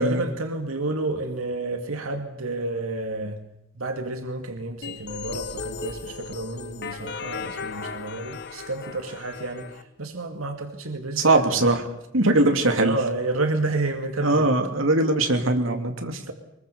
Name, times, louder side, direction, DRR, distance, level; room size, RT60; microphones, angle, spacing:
voice 1, 0.0-3.4 3.8-11.7 12.5-14.5, right 2 dB, 90° right, 6 dB, 2.5 m, -30 dB
sound 1, 4.8-9.8, left 4 dB, 55° left, 1.5 m, -36 dB
voice 2, 11.2-11.8 12.1-13.0 14.2-16.3, right 2 dB, 65° right, 5 dB, 2.9 m, -21 dB
24.0 x 22.5 x 7.0 m, 0.82 s
head